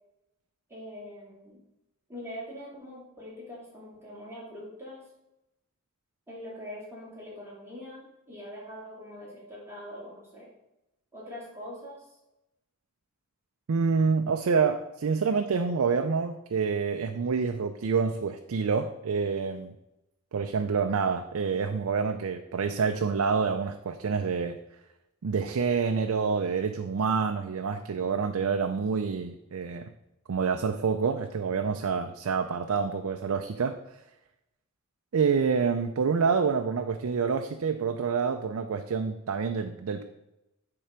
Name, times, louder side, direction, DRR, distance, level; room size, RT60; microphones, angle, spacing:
voice 1, 0.7-1.6 2.1-5.1 6.3-10.5 11.1-12.1, left 1 dB, 10° right, -6 dB, 2.4 m, -43 dB
voice 2, 13.7-19.7 20.3-24.6 25.2-29.9 30.3-33.8 35.1-40.0, right 5 dB, 85° right, 6 dB, 0.4 m, -27 dB
10.0 x 3.8 x 4.4 m, 0.92 s
head